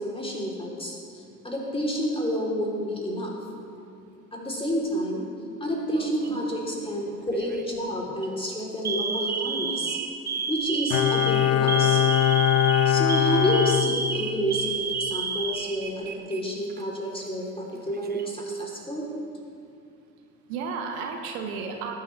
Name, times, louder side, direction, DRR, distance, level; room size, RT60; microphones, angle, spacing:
voice 1, 0.0-3.3 4.3-5.2 5.6-10.0 10.5-12.0 12.8-19.1, equal, 15° left, -3 dB, 3.3 m, -29 dB
Alarm, 5.9-6.5 7.3-7.6 8.1-8.3 8.8-16.4 16.7-16.8 17.7-18.4, right 5 dB, 20° right, 0.8 m, -31 dB
voice 2, 6.3-7.2 20.5-21.9, right 5 dB, 65° right, 3 dB, 1.2 m, -34 dB
Bowed string instrument, 10.9-14.6 14.9-15.0, left 10 dB, 70° left, 0.6 m, -22 dB
19.5 x 9.4 x 3.3 m, 2.5 s
figure-of-eight pair, 55°, 42 cm